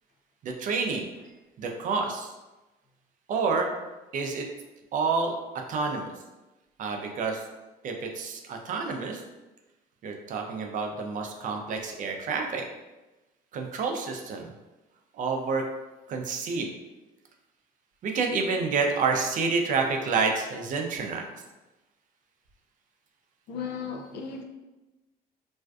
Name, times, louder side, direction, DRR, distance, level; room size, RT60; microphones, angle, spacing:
voice 1, 0.4-1.1 1.6-2.3 3.3-3.7 4.1-4.5 4.9-5.3 5.7-6.1 6.8-7.4 7.8-9.2 10.0-12.6 13.5-14.5 15.2-15.6 16.1-16.7 18.0-21.3, right 4 dB, 50° right, 3 dB, 0.4 m, -28 dB
voice 2, 23.5-24.4, left 6 dB, 75° left, 3 dB, 0.4 m, -35 dB
2.4 x 2.2 x 2.3 m, 1.1 s
cardioid pair, 110°, 17 cm